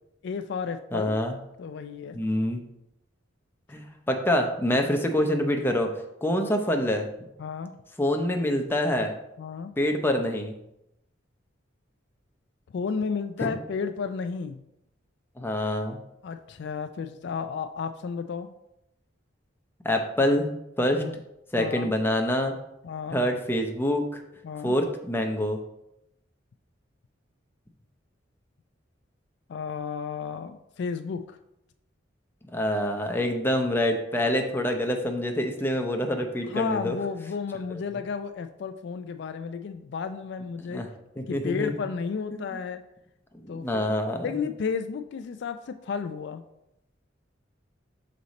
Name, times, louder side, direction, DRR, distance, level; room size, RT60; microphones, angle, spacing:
voice 1, 0.2-1.1 1.6-2.2 7.4-7.7 9.4-9.7 12.7-14.6 16.2-18.5 21.0-21.2 21.6-21.9 22.8-23.2 24.4-24.8 29.5-31.4 36.5-40.8 41.3-42.8 43.5-44.0 44.2-46.4, left 5 dB, 65° left, 9 dB, 0.3 m, -32 dB
voice 2, 0.9-1.4 2.1-2.6 3.7-5.9 6.2-7.1 8.0-9.1 9.8-10.6 13.4-13.5 15.4-16.0 19.8-20.5 20.8-21.0 21.5-22.5 23.1-24.2 24.6-25.6 32.5-36.9 40.6-40.8 41.2-41.7 43.4-44.4, left 1 dB, 10° left, 4 dB, 0.6 m, -26 dB
6.4 x 4.1 x 4.0 m, 0.85 s
head